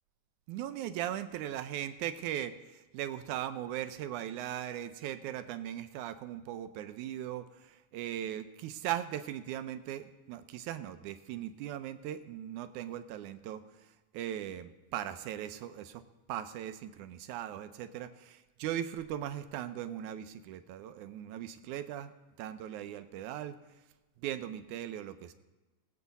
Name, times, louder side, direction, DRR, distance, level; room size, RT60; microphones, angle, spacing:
voice 1, 0.5-16.0 16.3-22.1 22.4-23.6 24.2-25.3, right 11 dB, 75° right, 10 dB, 1.9 m, -39 dB
21.0 x 8.0 x 4.1 m, 1.2 s
omnidirectional pair, 3.8 m